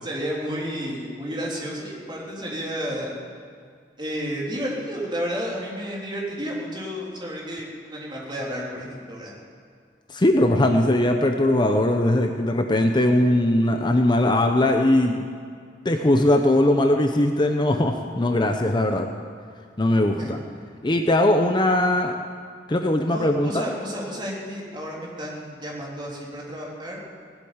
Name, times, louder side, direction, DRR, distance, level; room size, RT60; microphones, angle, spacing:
voice 1, 0.0-3.2 4.0-9.3 20.2-20.3 23.0-27.0, equal, 25° right, -4 dB, 3.6 m, -31 dB
voice 2, 10.1-15.3 15.8-19.1 19.8-20.4 20.8-22.2 22.7-23.7, left 1 dB, 25° left, 4 dB, 0.8 m, -20 dB
18.0 x 8.3 x 8.9 m, 2.1 s
head